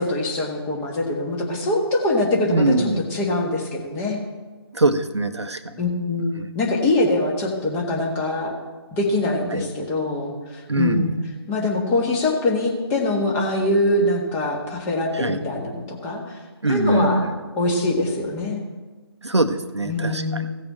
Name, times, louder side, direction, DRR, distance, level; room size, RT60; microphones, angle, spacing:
voice 1, 0.0-4.2 5.8-8.5 8.9-11.2 11.5-16.3 16.7-17.3 17.6-18.6 19.8-20.5, left 2 dB, 15° left, 0 dB, 1.5 m, -23 dB
voice 2, 2.5-3.0 4.7-5.8 6.4-6.5 9.5-9.6 10.7-11.1 15.1-15.4 16.6-17.3 19.2-20.4, right 2 dB, 85° right, 9 dB, 0.9 m, -22 dB
16.0 x 6.5 x 4.3 m, 1.3 s
figure-of-eight pair, 150°, 14 cm